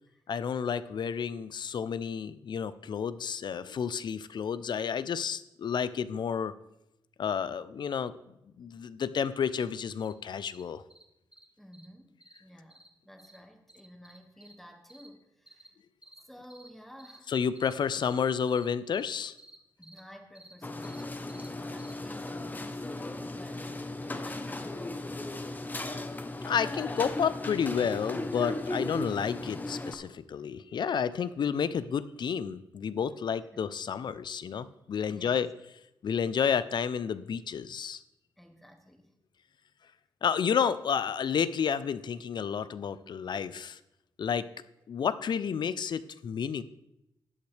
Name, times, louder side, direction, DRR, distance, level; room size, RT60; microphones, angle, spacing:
voice 1, 0.3-6.5 7.2-8.1 8.6-10.8 17.3-19.3 26.4-35.5 36.0-38.0 40.2-43.8 44.2-44.5 44.9-46.6, left 7 dB, 60° left, 15 dB, 0.5 m, -31 dB
sound 1, 9.6-9.7 10.0-10.1 10.5-10.6 10.9-11.0 11.3-11.4 11.7-11.9 12.2-12.4 12.7-12.9 13.2-13.4 13.7-14.5 14.9-15.1 15.5-15.7 16.0-16.2 16.5-16.7 17.0-17.2 17.5-17.7 18.0-18.2 18.5-18.7 18.9-19.1 19.4-19.6 19.8-20.0 20.3-20.5 20.8-21.0 21.3-21.5 21.8-21.9, right 1 dB, 15° right, 1.2 m, -53 dB
voice 2, 11.6-12.1 12.4-15.7 16.3-17.3 19.8-23.9 24.2-26.1 33.5-33.6 35.0-35.4 38.4-39.1, equal, ahead, 3 dB, 1.7 m, -52 dB
sound 2, 20.6-30.0, left 2 dB, 20° left, 0.8 m, -36 dB
12.5 x 8.4 x 3.3 m, 0.86 s
cardioid pair, 70°, 9 cm